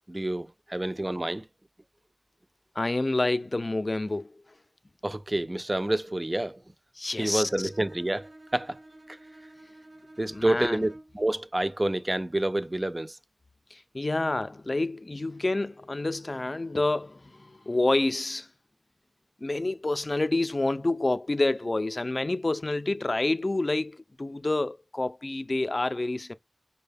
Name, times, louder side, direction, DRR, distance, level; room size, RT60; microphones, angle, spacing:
voice 1, 0.1-1.4 5.0-6.6 7.2-8.8 9.1-9.2 10.2-13.2, right 1 dB, 30° right, 0.3 m, -28 dB
voice 2, 2.8-4.4 7.0-7.7 10.3-10.8 13.7-18.5 19.4-26.3, left 2 dB, 50° left, 0.3 m, -28 dB
Bowed string instrument, 7.2-11.3, right 1 dB, 65° right, 0.7 m, -50 dB
5.3 x 2.2 x 3.3 m
wide cardioid pair, 60°, 0 cm